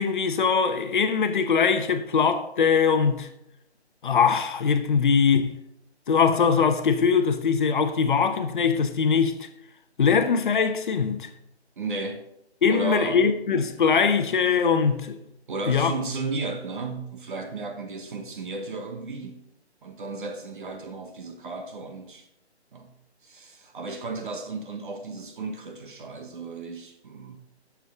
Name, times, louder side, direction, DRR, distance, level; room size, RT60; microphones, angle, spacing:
voice 1, 0.0-3.3 4.0-5.6 6.1-9.5 10.0-11.3 12.6-15.2 15.7-15.9, left 6 dB, 45° left, 1.0 m, -22 dB
voice 2, 11.8-12.2 12.7-13.3 15.5-19.4 19.8-22.3 22.7-22.9 23.2-27.4, right 3 dB, 50° right, 1.2 m, -34 dB
10.5 x 7.3 x 3.7 m
figure-of-eight pair, 155°, 33 cm